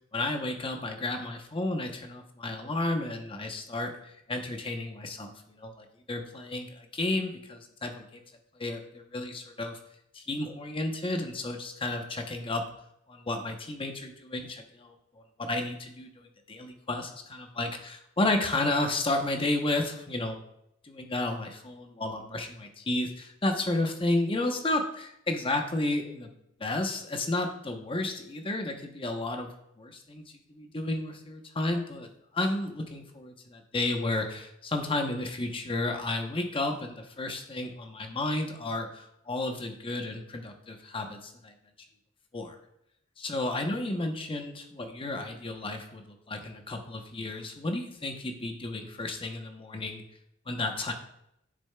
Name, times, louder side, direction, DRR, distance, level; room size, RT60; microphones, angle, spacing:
voice 1, 0.1-8.2 8.6-9.8 10.1-12.6 13.1-20.4 20.8-26.3 26.6-41.5 42.3-42.6 43.2-50.0 50.5-50.9, left 2 dB, 30° left, 4 dB, 0.8 m, -32 dB
8.7 x 6.8 x 2.2 m, 0.78 s
head